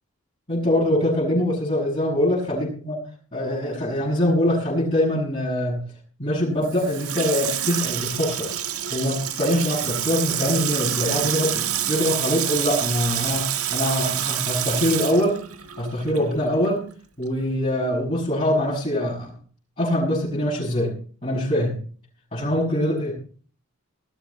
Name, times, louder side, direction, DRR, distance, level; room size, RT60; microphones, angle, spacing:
voice 1, 0.5-2.9 3.3-5.8 6.2-8.5 8.9-15.4 15.8-16.9 17.2-19.3 19.8-20.9 21.2-21.8 22.3-23.1, left 1 dB, 30° left, -7 dB, 6.7 m, -23 dB
Water tap faucet / Sink (filling or washing), 6.6-16.3 16.6-16.7, right 11 dB, 90° right, 1.8 m, -27 dB
19.5 x 13.0 x 4.2 m, 0.43 s
head